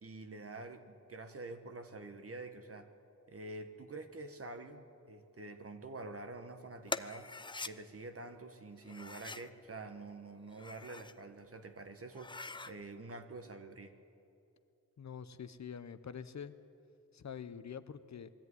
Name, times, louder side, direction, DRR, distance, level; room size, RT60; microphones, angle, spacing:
voice 1, 0.0-2.9 3.3-7.3 7.6-12.3 12.6-13.9, right 2 dB, 45° right, 7 dB, 1.5 m, -47 dB
Smooth Metal Sliding, 6.9-7.7 8.8-9.5 10.4-11.2 11.6-11.7 12.1-12.7, left 3 dB, 15° left, 0.5 m, -43 dB
voice 2, 15.0-16.5 17.1-18.3, left 7 dB, 60° left, 12 dB, 0.8 m, -46 dB
21.0 x 13.5 x 9.7 m, 2.7 s
wide cardioid pair, 90°, 32 cm